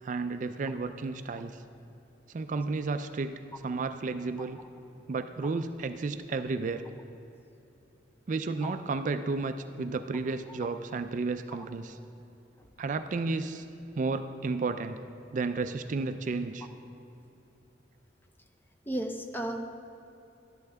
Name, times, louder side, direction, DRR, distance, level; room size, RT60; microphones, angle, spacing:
voice 1, 0.0-1.6 2.3-4.6 5.1-6.9 8.3-12.0 12.8-13.6 14.0-15.0 15.3-16.7, right 3 dB, 45° right, 9 dB, 0.4 m, -32 dB
voice 2, 18.9-19.6, right 1 dB, 10° left, 5 dB, 0.6 m, -34 dB
11.5 x 11.5 x 3.4 m, 2.9 s
head